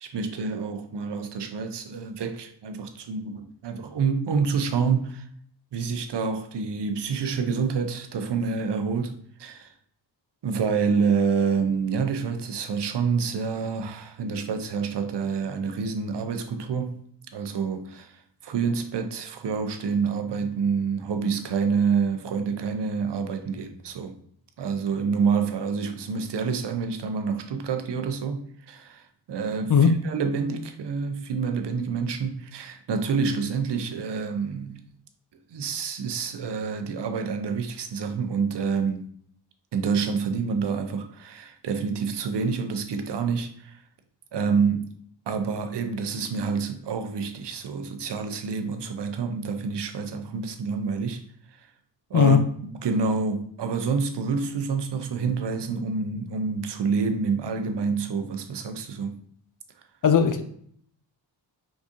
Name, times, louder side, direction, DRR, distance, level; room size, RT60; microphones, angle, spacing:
voice 1, 0.0-5.3 5.7-9.7 10.4-17.0 17.3-24.2 24.6-34.8 35.5-39.1 39.7-43.8 44.3-44.9 45.3-51.2 51.5-51.7 52.1-52.4 52.7-59.2, right 5 dB, 60° right, 0.7 m, -27 dB
voice 2, 60.0-60.4, left 6 dB, 45° left, 0.6 m, -17 dB
4.9 x 3.6 x 2.7 m
cardioid pair, 70°, 46 cm